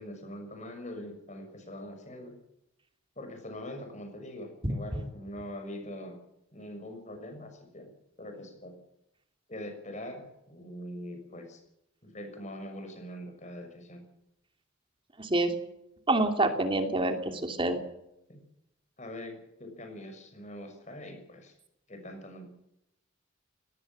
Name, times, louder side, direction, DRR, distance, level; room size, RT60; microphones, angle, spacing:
voice 1, 0.0-2.3 3.2-6.2 6.5-7.9 8.2-8.7 9.5-11.6 12.0-14.0 18.3-18.4 19.0-21.5 21.9-22.5, left 1 dB, 35° left, 6 dB, 6.3 m, -43 dB
voice 2, 15.2-15.5 16.1-17.8, right 2 dB, 25° right, 6 dB, 2.7 m, -27 dB
19.0 x 18.5 x 7.5 m, 0.83 s
head